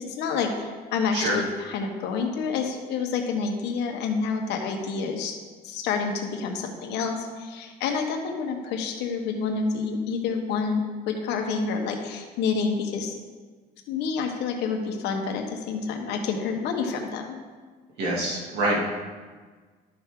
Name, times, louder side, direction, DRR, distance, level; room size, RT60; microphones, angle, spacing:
voice 1, 0.0-5.3 5.6-13.1 13.9-17.4, left 5 dB, 85° left, 3 dB, 1.3 m, -28 dB
voice 2, 18.0-18.8, right 1 dB, 85° right, -4 dB, 2.8 m, -25 dB
12.0 x 5.8 x 3.8 m, 1.4 s
cardioid pair, 110°, 17 cm